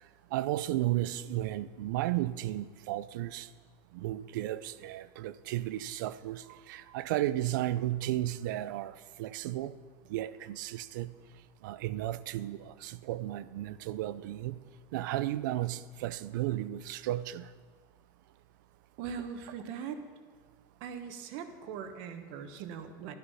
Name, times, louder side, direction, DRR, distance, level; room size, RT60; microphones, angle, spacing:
voice 1, 0.3-3.5 3.9-9.7 10.1-11.1 11.6-14.6 14.9-17.5, right 14 dB, 90° right, 0.6 m, -34 dB
voice 2, 19.0-20.0 20.8-23.2, right 7 dB, 60° right, 1.3 m, -40 dB
12.0 x 11.5 x 5.6 m
cardioid pair, 155°, 10 cm